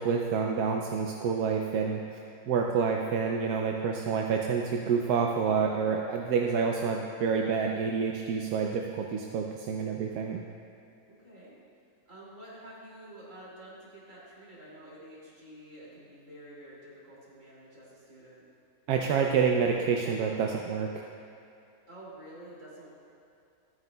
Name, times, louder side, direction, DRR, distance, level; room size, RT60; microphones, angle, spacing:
voice 1, 0.0-2.0 2.5-10.5 18.9-21.0, right 6 dB, 85° right, 1 dB, 1.1 m, -28 dB
voice 2, 11.1-11.6 12.1-18.4 21.9-23.0, right 1 dB, 55° right, -7 dB, 2.9 m, -49 dB
13.5 x 9.1 x 2.2 m, 2.6 s
omnidirectional pair, 1.6 m